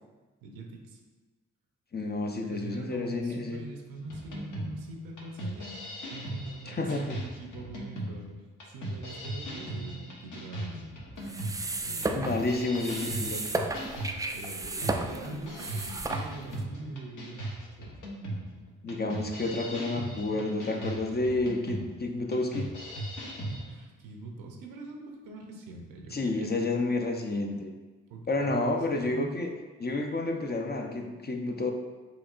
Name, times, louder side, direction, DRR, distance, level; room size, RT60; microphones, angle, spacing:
voice 1, 0.4-1.0 2.4-5.8 6.1-8.3 8.6-11.5 11.8-12.2 14.3-18.0 23.6-26.6 28.1-29.3, right 2 dB, 80° right, 1 dB, 0.7 m, -43 dB
voice 2, 1.9-3.6 6.7-7.2 12.1-13.4 18.8-22.7 26.1-27.7 28.3-29.5 29.8-31.7, left 2 dB, 30° left, 2 dB, 0.6 m, -30 dB
sound 1, 4.1-23.6, right 1 dB, 65° left, 1.0 m, -38 dB
sound 2, 11.2-16.6, right 2 dB, 10° right, 0.3 m, -34 dB
4.9 x 2.9 x 2.4 m, 1.3 s
supercardioid pair, 40°, 33 cm